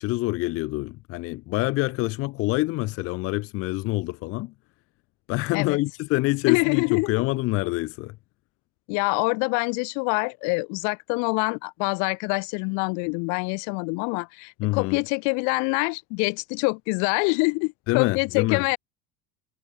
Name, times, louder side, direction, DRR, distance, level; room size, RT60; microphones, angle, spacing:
voice 1, 0.0-4.5 5.3-8.2 14.6-15.0 17.9-18.7, left 21 dB, 45° left, 0.7 m, -26 dB
voice 2, 6.5-7.1 8.9-18.8, left 36 dB, 65° left, 1.3 m, -25 dB
cardioid pair, 165°, 32 cm